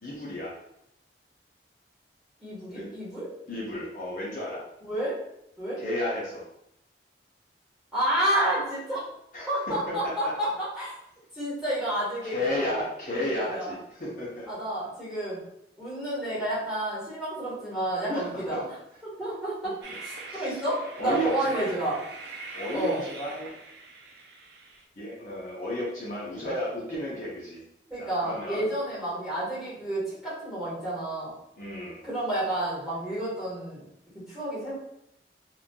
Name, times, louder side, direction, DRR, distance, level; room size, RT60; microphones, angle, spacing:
voice 1, 0.0-0.6 2.7-2.9 3.5-4.6 5.8-6.4 9.3-10.3 12.2-14.5 18.1-18.6 20.2-20.6 21.0-21.7 22.5-23.5 25.0-27.6 28.0-28.7 31.6-32.0, left 1 dB, 45° left, -6 dB, 0.6 m, -33 dB
voice 2, 2.4-3.3 4.8-5.1 5.6-5.8 7.9-9.0 9.5-10.9 11.3-12.7 13.1-13.7 14.5-15.4 15.8-18.7 19.0-19.7 20.0-22.0 22.7-23.0 27.9-31.3 32.0-33.8 34.1-34.8, right 1 dB, ahead, -10 dB, 1.3 m, -30 dB
Train, 19.8-24.8, right 3 dB, 70° right, 0.4 m, -43 dB
3.0 x 2.5 x 2.2 m, 0.79 s
head